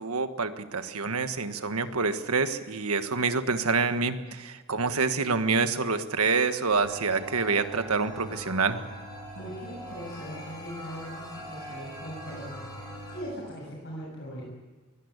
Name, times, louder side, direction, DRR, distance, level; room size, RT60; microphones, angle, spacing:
voice 1, 0.0-8.8, right 4 dB, 85° right, 9 dB, 1.5 m, -27 dB
sound 1, 6.7-13.2, equal, 20° left, 6.6 m, -42 dB
voice 2, 9.4-12.7 13.1-14.4, equal, 55° left, -3 dB, 7.3 m, -40 dB
22.0 x 17.5 x 8.2 m, 1.3 s
head